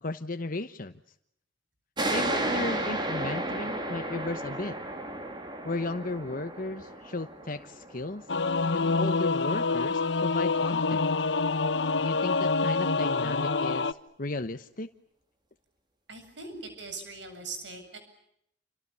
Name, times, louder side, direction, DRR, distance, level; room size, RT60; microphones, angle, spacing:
voice 1, 0.0-0.9 2.1-4.8 5.6-8.2 8.7-11.0 12.0-14.9, left 2 dB, 50° left, 9 dB, 1.1 m, -35 dB
sound 1, 2.0-9.1, right 1 dB, 25° right, 4.2 m, -33 dB
Singing / Musical instrument, 8.3-13.9, left 4 dB, 70° left, 1.1 m, -26 dB
voice 2, 16.1-18.0, right 3 dB, 75° right, 7 dB, 7.7 m, -41 dB
29.5 x 27.0 x 7.0 m, 0.74 s
head